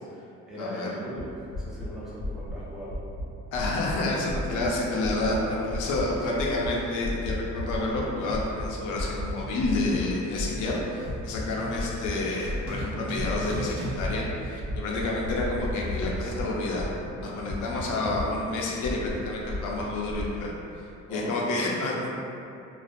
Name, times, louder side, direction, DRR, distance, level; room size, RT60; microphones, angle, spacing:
voice 1, 0.0-3.0 4.4-4.6 5.2-6.6 21.1-21.4, equal, ahead, -9 dB, 0.6 m, -39 dB
voice 2, 0.6-0.9 3.5-16.9 17.2-20.5 21.1-22.1, left 2 dB, 90° left, -3 dB, 0.5 m, -29 dB
sound 1, 1.2-1.3 1.5-1.9 2.2-2.5 2.9-3.2 3.5-3.9 4.3-4.7 5.0-5.4 5.7-6.1 6.3-6.7 7.0-8.0 8.3-8.7 9.0-9.3 9.6-10.0 10.3-11.4 11.7-12.1 12.4-12.8 13.2-13.6 13.9-14.3 14.6-16.4 16.7-17.1 17.4-18.5 18.8-20.3, left 1 dB, 50° left, 0.8 m, -33 dB
sound 2, 6.6-15.2, right 2 dB, 70° right, 0.7 m, -41 dB
2.5 x 2.2 x 2.4 m, 2.7 s
cardioid pair, 90°, 30 cm